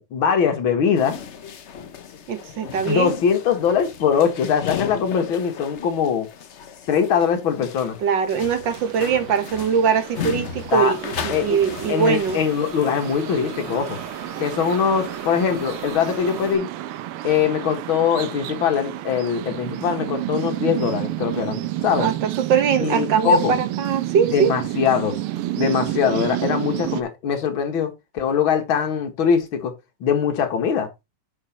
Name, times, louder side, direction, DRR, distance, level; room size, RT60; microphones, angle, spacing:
voice 1, 0.1-1.2 2.9-6.3 6.9-8.0 10.7-10.9 11.3-11.6 11.9-14.0 14.4-16.7 17.2-22.1 22.8-23.5 24.3-25.2 25.6-29.7 30.0-30.9, left 7 dB, 65° left, 2.4 m, -22 dB
sound 1, 1.0-12.4, left 7 dB, 80° left, 0.6 m, -36 dB
voice 2, 2.3-3.2 8.0-12.4 22.0-24.5, right 7 dB, 60° right, 1.9 m, -21 dB
sound 2, 8.7-27.0, right 14 dB, 85° right, 1.7 m, -30 dB
sound 3, 10.7-16.6, right 1 dB, 15° left, 5.0 m, -40 dB
9.7 x 5.1 x 4.3 m
omnidirectional pair, 2.4 m